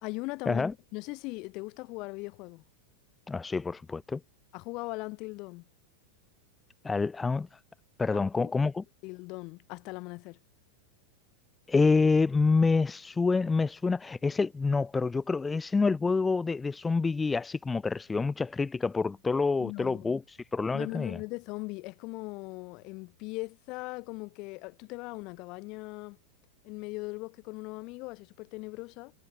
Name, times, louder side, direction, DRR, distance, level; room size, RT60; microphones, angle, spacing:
voice 1, 0.0-0.6 0.9-2.6 4.5-5.6 8.1-8.5 9.0-10.4 19.6-20.1 20.7-26.2 26.6-29.1, left 25 dB, 40° left, 3.8 m, -39 dB
voice 2, 3.3-4.2 6.8-7.6 8.0-8.8 11.7-21.2, left 4 dB, 10° left, 1.0 m, -27 dB
figure-of-eight pair, 90°, 0 cm